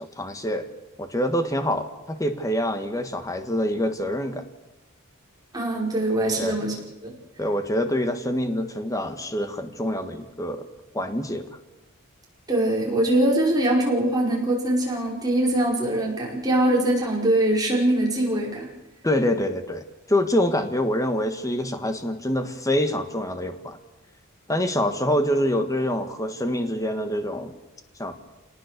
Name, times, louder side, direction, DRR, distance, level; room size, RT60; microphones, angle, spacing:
voice 1, 0.2-0.7 1.0-4.5 6.4-6.7 7.4-10.7 10.9-11.5 19.0-23.8 24.5-27.5 28.0-28.1, left 1 dB, 15° left, 7 dB, 1.6 m, -26 dB
voice 2, 5.5-7.1 12.5-18.7, right 1 dB, 20° right, -3 dB, 5.3 m, -22 dB
27.0 x 19.0 x 6.7 m, 1.1 s
head